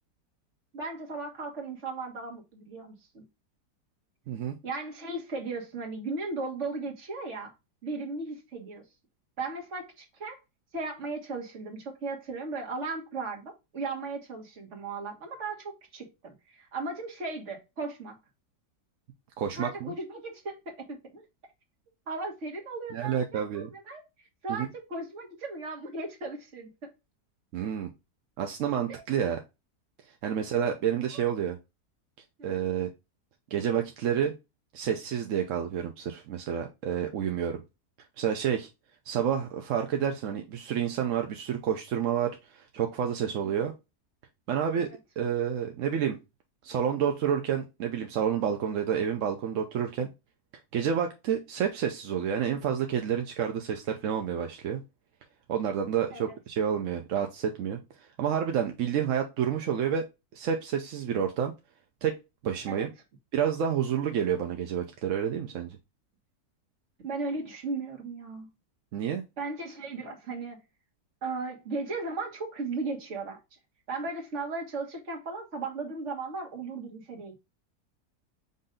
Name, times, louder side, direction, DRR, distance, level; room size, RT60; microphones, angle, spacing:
voice 1, 0.7-3.2 4.6-7.5 7.8-8.8 9.4-10.4 10.7-18.2 19.6-21.2 22.1-24.0 24.4-26.9 28.9-29.0 31.1-31.2 32.4-32.6 43.4-43.5 44.8-45.0 56.1-56.2 62.7-62.9 67.0-68.5 69.4-70.6 71.2-73.4 73.9-77.4, right 3 dB, 50° right, 1.7 m, -36 dB
voice 2, 19.4-19.9 22.9-23.7 24.5-24.7 27.5-27.9 28.4-29.4 30.2-31.6 32.4-32.9 33.5-34.3 34.7-37.6 38.2-38.7 39.1-43.7 44.5-44.9 45.2-46.2 46.6-50.1 50.7-54.8 55.5-57.8 58.2-60.1 60.3-61.5 62.0-62.1 62.4-62.9 63.3-65.8 68.9-69.2, right 8 dB, 65° right, 0.9 m, -29 dB
5.4 x 2.6 x 3.7 m
omnidirectional pair, 1.7 m